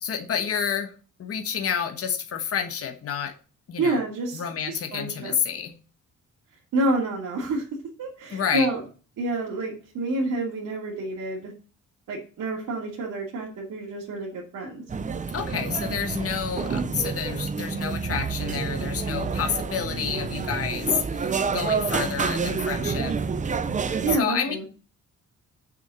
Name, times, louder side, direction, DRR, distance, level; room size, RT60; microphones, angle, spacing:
voice 1, 0.0-0.9 1.2-3.3 3.7-4.0 4.3-5.7 8.3-8.7 15.3-23.1 24.2-24.6, left 7 dB, 45° left, 5 dB, 1.4 m, -29 dB
voice 2, 3.8-5.3 6.7-7.7 8.0-8.8 9.2-11.5 12.1-14.8 24.0-24.7, right 2 dB, 75° right, -4 dB, 2.7 m, -28 dB
sound 1, 14.9-24.2, right 5 dB, 25° right, 0.5 m, -28 dB
6.6 x 6.3 x 6.9 m, 0.37 s
cardioid pair, 155°, 31 cm